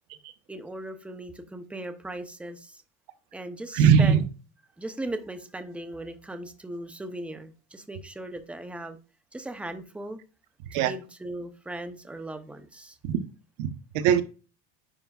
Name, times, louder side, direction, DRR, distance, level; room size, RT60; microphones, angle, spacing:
voice 1, 0.5-2.8 3.3-4.2 4.8-9.0 9.3-10.2 10.7-13.0, right 1 dB, 5° right, 8 dB, 0.7 m, -38 dB
voice 2, 3.7-4.2 10.7-10.9 13.0-13.2 13.6-14.2, right 7 dB, 75° right, 11 dB, 1.0 m, -21 dB
10.0 x 4.6 x 2.4 m, 0.35 s
cardioid pair, 135°, 37 cm